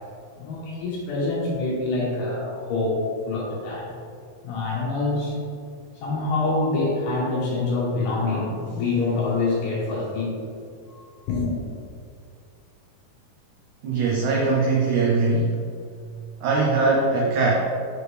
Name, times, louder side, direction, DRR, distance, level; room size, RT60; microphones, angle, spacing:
voice 1, 0.4-3.9 4.4-5.4 6.0-10.5 10.9-11.6, left 3 dB, 70° left, -5 dB, 2.3 m, -26 dB
voice 2, 13.8-15.6 16.4-17.6, right 3 dB, 85° right, -3 dB, 1.7 m, -21 dB
6.5 x 4.9 x 3.3 m, 2.4 s
omnidirectional pair, 4.4 m